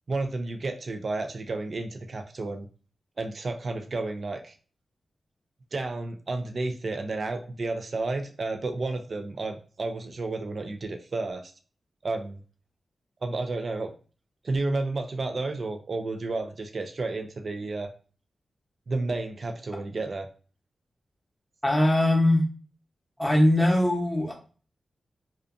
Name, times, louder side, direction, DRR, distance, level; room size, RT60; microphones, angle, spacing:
voice 1, 0.1-2.7 3.2-4.5 5.7-11.5 12.0-12.4 13.2-13.9 14.4-17.9 18.9-20.3, right 3 dB, 50° right, 6 dB, 0.3 m, -31 dB
voice 2, 21.6-22.4 23.2-24.3, left 1 dB, 5° left, -2 dB, 0.8 m, -21 dB
2.5 x 2.2 x 2.4 m, 0.38 s
wide cardioid pair, 95°, 0 cm